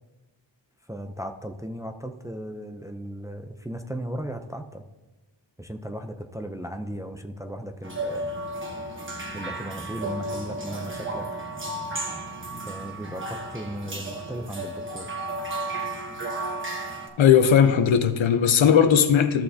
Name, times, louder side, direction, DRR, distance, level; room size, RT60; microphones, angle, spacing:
voice 1, 0.9-4.8 5.6-8.3 9.3-11.3 12.5-15.1, right 1 dB, 5° right, 5 dB, 0.5 m, -36 dB
sound 1, 7.8-17.1, right 2 dB, 25° right, 1.1 m, -33 dB
voice 2, 17.2-19.4, left 8 dB, 80° left, 9 dB, 0.8 m, -18 dB
14.0 x 6.4 x 2.7 m, 1.1 s
wide cardioid pair, 110°, 45 cm